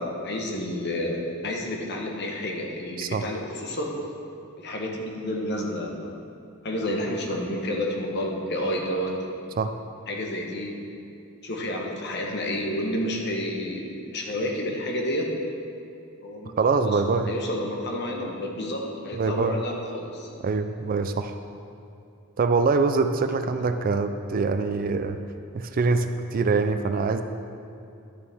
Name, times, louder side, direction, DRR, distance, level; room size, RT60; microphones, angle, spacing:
voice 1, 0.0-3.9 4.6-6.2 6.6-9.4 10.1-10.7 11.4-15.3 16.2-20.3, left 1 dB, 50° left, 0 dB, 1.1 m, -30 dB
voice 2, 16.6-17.3 19.1-19.6 20.4-21.4 22.4-25.2 25.5-27.2, right 4 dB, 40° right, 8 dB, 0.4 m, -24 dB
11.0 x 6.9 x 3.5 m, 2.6 s
head